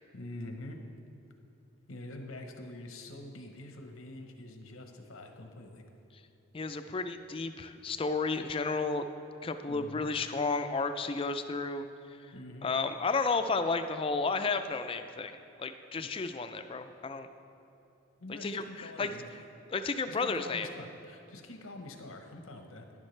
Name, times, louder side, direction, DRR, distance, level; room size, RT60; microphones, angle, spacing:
voice 1, 0.1-0.8 1.9-5.8 9.7-10.1 12.3-12.7 16.0-16.1 18.2-19.3 20.1-22.9, left 1 dB, 85° left, 5 dB, 0.9 m, -45 dB
voice 2, 6.5-9.1 9.4-11.9 12.2-12.3 12.6-15.3 15.6-17.3 18.3-19.1 19.7-20.7, left 4 dB, 25° left, 9 dB, 0.3 m, -32 dB
11.0 x 10.5 x 3.2 m, 2.8 s
head